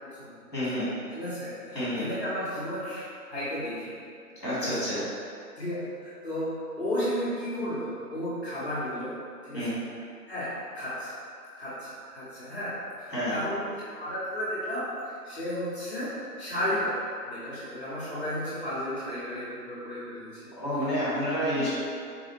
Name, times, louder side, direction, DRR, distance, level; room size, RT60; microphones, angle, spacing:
voice 1, 0.0-3.0 3.3-4.0 4.6-4.8 5.6-9.2 9.4-9.7 10.3-11.2 11.5-14.9 15.2-20.5 21.5-21.6, equal, 40° left, -11 dB, 0.7 m, -33 dB
voice 2, 0.5-0.9 1.7-2.0 4.4-5.0 9.5-9.7 13.1-13.4 20.6-21.7, equal, 10° left, -17 dB, 0.9 m, -29 dB
4.1 x 2.3 x 2.9 m, 2.3 s
figure-of-eight pair, 150°, 48 cm